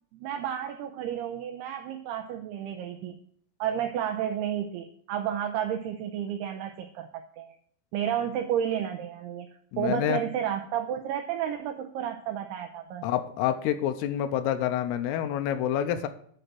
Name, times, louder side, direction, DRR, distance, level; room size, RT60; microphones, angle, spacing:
voice 1, 0.1-3.2 3.6-7.5 7.9-9.5 9.8-13.0, right 9 dB, 90° right, 5 dB, 2.3 m, -31 dB
voice 2, 9.7-10.2 13.0-16.1, left 10 dB, 85° left, 8 dB, 2.4 m, -27 dB
9.9 x 3.9 x 7.4 m, 0.62 s
omnidirectional pair, 5.4 m